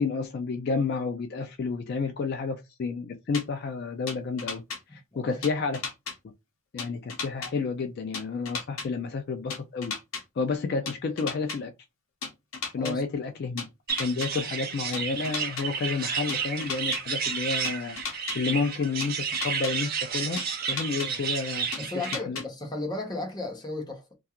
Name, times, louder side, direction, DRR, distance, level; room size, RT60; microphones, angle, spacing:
voice 1, 0.0-4.6 4.9-5.8 6.7-9.9 10.4-11.7 12.7-13.7 14.0-20.4 20.7-21.7 21.9-22.4, left 4 dB, 50° left, 0.3 m, -30 dB
sound 1, 3.3-3.4 4.1-4.8 5.4-6.2 6.8-7.5 8.1-8.9 9.5-10.2 10.9-11.6 12.2-12.9 13.6-14.3 14.9-15.7 16.3-17.0 17.6-18.4 19.0-19.7 20.4-21.1 21.7-22.4, left 5 dB, 80° left, 0.7 m, -34 dB
voice 2, 4.9-5.4 12.8-13.0 21.0-21.2 21.8-24.2, left 2 dB, 20° left, 0.6 m, -35 dB
sound 2, 13.9-22.2, right 6 dB, 45° right, 0.5 m, -31 dB
2.3 x 2.3 x 2.7 m
head